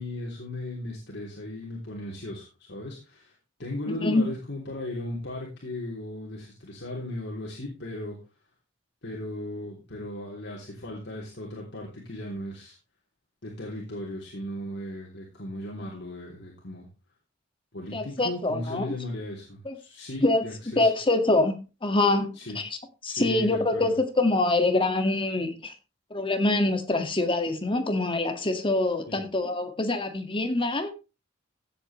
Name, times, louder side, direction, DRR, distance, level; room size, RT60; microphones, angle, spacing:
voice 1, 0.0-3.3 3.6-8.2 9.0-12.8 13.4-16.9 17.7-20.9 22.4-22.6 23.1-23.9 29.1-29.2, left 1 dB, 60° left, 3.3 m, -36 dB
voice 2, 3.9-4.2 17.9-19.0 19.7-19.8 20.2-20.4 20.8-21.5 21.8-22.7 23.0-25.7 26.1-30.9, left 2 dB, 25° left, 1.9 m, -25 dB
16.0 x 8.3 x 3.2 m
head